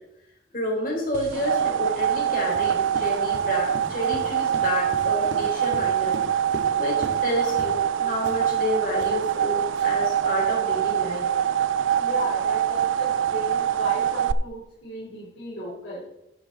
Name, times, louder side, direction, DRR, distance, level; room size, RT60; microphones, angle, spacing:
voice 1, 0.5-6.2 6.8-11.3, left 1 dB, 45° left, -3 dB, 3.7 m, -29 dB
sound 1, 1.1-14.3, right 9 dB, 85° right, 0.5 m, -24 dB
Run, 2.5-7.3 7.6-7.8 8.2-10.1, right 1 dB, 65° right, 2.1 m, -39 dB
voice 2, 11.9-16.0, left 1 dB, 85° left, -6 dB, 3.2 m, -35 dB
11.0 x 10.5 x 3.6 m, 0.88 s
head